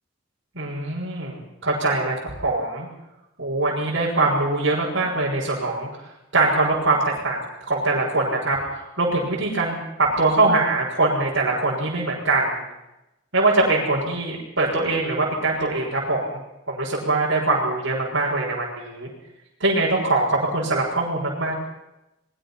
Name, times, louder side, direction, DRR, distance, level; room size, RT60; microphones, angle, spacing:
voice 1, 0.5-2.9 3.4-5.9 6.3-7.4 7.7-12.6 13.3-16.4 16.7-19.1 19.6-21.5, right 2 dB, 65° right, -6 dB, 6.3 m, -22 dB
23.0 x 22.5 x 5.9 m, 0.92 s
head